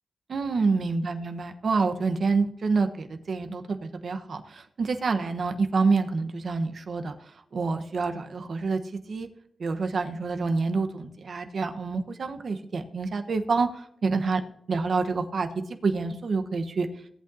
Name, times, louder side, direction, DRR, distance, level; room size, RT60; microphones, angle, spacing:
voice 1, 0.3-7.1 7.5-9.3 9.6-14.4 14.7-16.9, right 4 dB, 70° right, 7 dB, 1.1 m, -27 dB
17.5 x 8.5 x 2.8 m, 0.70 s
cardioid pair, 60°, 0 cm